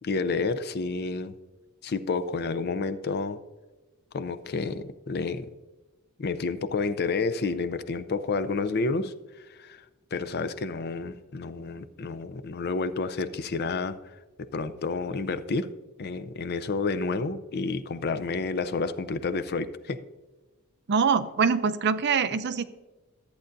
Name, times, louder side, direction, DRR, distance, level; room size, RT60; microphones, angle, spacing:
voice 1, 0.0-1.3 1.8-3.4 4.1-5.5 6.2-9.8 10.1-15.7 16.0-20.0, left 4 dB, 45° left, 11 dB, 0.5 m, -30 dB
voice 2, 20.9-22.6, right 6 dB, 50° right, 12 dB, 0.5 m, -24 dB
14.0 x 8.5 x 2.6 m, 1.2 s
head